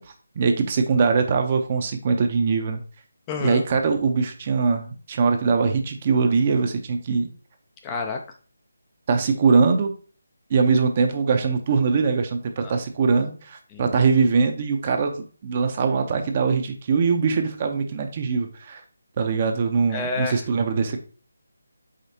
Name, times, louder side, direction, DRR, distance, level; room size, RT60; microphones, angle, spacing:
voice 1, 0.4-2.8 3.4-7.3 9.1-9.9 10.5-18.8 19.2-21.0, right 5 dB, 30° right, 6 dB, 0.7 m, -22 dB
voice 2, 3.3-3.6 7.8-8.2 12.6-12.7 13.7-13.8 19.9-20.4, left 4 dB, 15° left, 3 dB, 0.4 m, -29 dB
5.0 x 3.8 x 2.8 m, 0.37 s
figure-of-eight pair, 165°, 0 cm